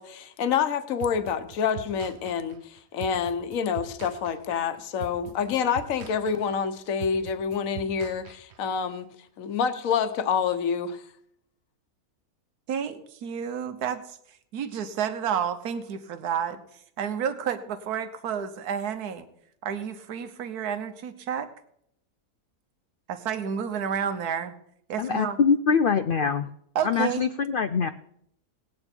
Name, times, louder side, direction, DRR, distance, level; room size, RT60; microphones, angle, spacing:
voice 1, 0.0-9.1 9.4-11.0, left 7 dB, 65° left, 10 dB, 1.3 m, -27 dB
sound 1, 1.0-8.8, right 8 dB, 55° right, 0.9 m, -43 dB
voice 2, 12.7-14.2 14.5-16.6 17.0-19.2 19.6-21.5 23.1-24.5 24.9-25.4 26.7-27.2, right 8 dB, 85° right, 10 dB, 1.5 m, -30 dB
voice 3, 25.0-26.5 26.8-27.9, left 6 dB, 85° left, 11 dB, 0.4 m, -23 dB
18.5 x 8.8 x 4.4 m, 0.71 s
omnidirectional pair, 1.6 m